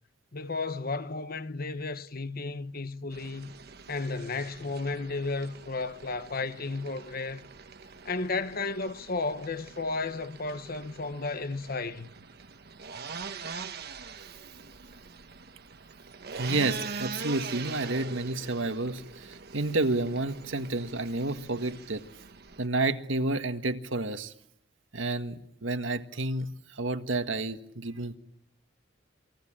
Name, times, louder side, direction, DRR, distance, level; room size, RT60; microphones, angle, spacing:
voice 1, 0.3-3.5 3.9-7.4 8.0-12.1, left 3 dB, 50° left, 1.1 m, -33 dB
sound 1, 3.1-22.7, right 5 dB, 55° right, 1.3 m, -43 dB
voice 2, 16.3-22.0 22.6-24.3 24.9-28.2, right 2 dB, 80° right, 1.7 m, -30 dB
28.0 x 20.0 x 8.8 m
head